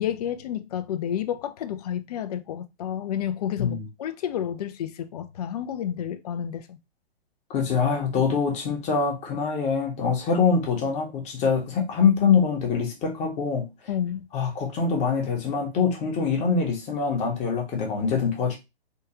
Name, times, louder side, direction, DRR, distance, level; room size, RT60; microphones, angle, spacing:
voice 1, 0.0-6.8 13.9-14.2, left 10 dB, 40° left, 0.4 m, -30 dB
voice 2, 7.5-13.7 14.3-18.6, left 5 dB, 20° left, 0.9 m, -24 dB
3.6 x 2.3 x 2.9 m
figure-of-eight pair, 125°, 31 cm